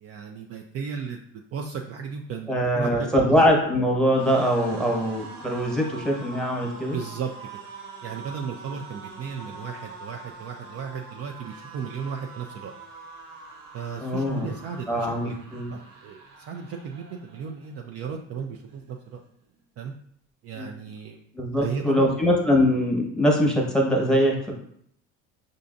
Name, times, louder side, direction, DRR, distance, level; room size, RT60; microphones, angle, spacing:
voice 1, 0.0-3.3 6.6-7.3 8.0-12.7 13.7-15.4 15.7-19.2 19.8-19.9 20.4-21.2 21.6-22.2, right 6 dB, 45° right, 2 dB, 0.4 m, -35 dB
voice 2, 2.5-7.0 14.0-14.5 14.9-15.7 20.6-20.7 21.3-24.5, equal, ahead, 0 dB, 1.1 m, -22 dB
sound 1, 2.6-17.8 18.2-18.4 18.7-19.5, right 3 dB, 85° right, 1.0 m, -44 dB
5.4 x 2.5 x 2.6 m, 0.67 s
supercardioid pair, 80°, 36 cm